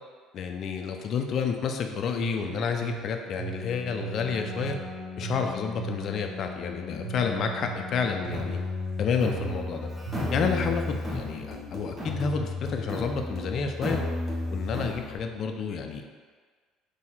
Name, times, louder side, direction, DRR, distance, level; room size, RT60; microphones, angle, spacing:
voice 1, 0.3-4.8 5.2-8.6 9.0-9.9 10.3-14.0 14.5-16.1, left 6 dB, 50° left, 4 dB, 0.4 m, -30 dB
sound 1, 2.2-6.2 7.0-8.6 9.2-10.7, right 12 dB, 80° right, 0.4 m, -39 dB
Keyboard (musical), 3.3-11.4, left 4 dB, 5° right, 0.6 m, -41 dB
sound 2, 8.3-15.2, left 2 dB, 20° right, 1.2 m, -33 dB
3.9 x 2.7 x 4.2 m, 1.6 s
cardioid pair, 115°, 0 cm